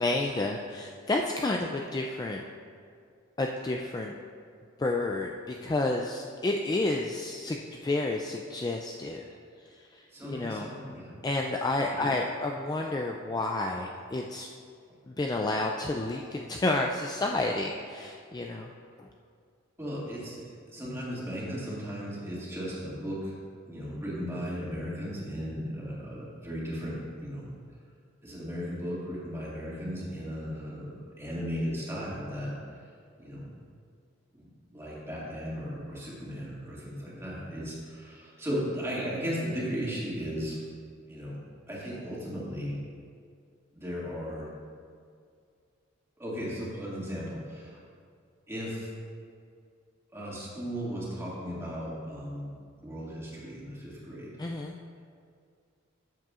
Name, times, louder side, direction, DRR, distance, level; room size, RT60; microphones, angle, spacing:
voice 1, 0.0-2.4 3.4-4.1 4.8-9.3 9.9-10.7 11.2-14.5 15.1-18.7 19.0-19.1 54.4-54.7, left 2 dB, 20° left, 1 dB, 0.3 m, -30 dB
voice 2, 10.1-11.2 11.8-12.1 19.8-23.3 23.7-27.5 28.2-32.5 33.2-33.5 34.3-40.6 41.1-41.4 41.7-42.8 43.7-44.5 46.2-47.8 48.5-48.9 50.1-52.5 52.8-54.3, equal, 15° right, -7 dB, 2.1 m, -36 dB
13.0 x 7.5 x 2.5 m, 2.2 s
head